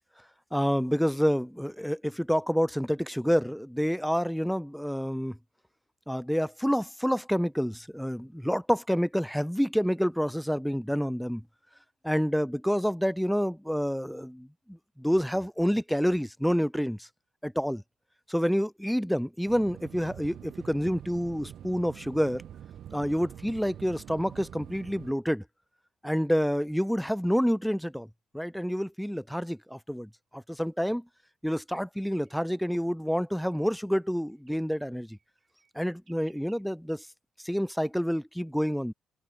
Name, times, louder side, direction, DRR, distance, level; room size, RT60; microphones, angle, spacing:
voice 1, 0.5-5.4 6.1-11.4 12.0-17.1 17.4-17.8 18.3-22.4 22.9-25.4 26.0-28.1 28.3-31.0 31.4-35.2 35.8-37.1 37.4-38.9, equal, ahead, 0.4 m, -28 dB
sound 1, 19.5-25.1, right 10 dB, 70° right, 1.1 m, -45 dB
sound 2, 32.2-32.4 33.3-33.8 34.3-34.6 35.1-37.0, right 6 dB, 45° right, 5.5 m, -65 dB
open air
cardioid pair, 90°, 0 cm